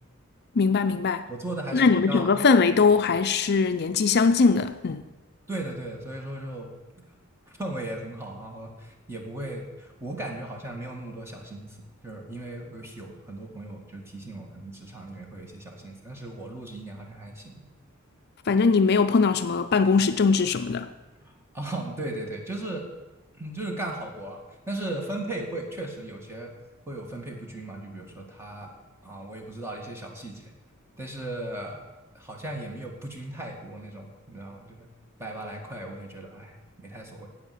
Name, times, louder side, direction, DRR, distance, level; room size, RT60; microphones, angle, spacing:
voice 1, 0.5-1.3 1.7-5.0 18.5-20.9, left 4 dB, 50° left, 9 dB, 0.5 m, -21 dB
voice 2, 1.3-2.3 5.5-6.7 7.5-11.8 12.0-17.6 21.5-22.9 23.3-24.4 24.7-26.5 26.9-28.7 29.0-30.5 31.0-31.8 32.1-34.9 35.2-37.3, right 1 dB, 10° right, 1 dB, 1.9 m, -37 dB
10.5 x 8.1 x 8.3 m, 1.1 s
head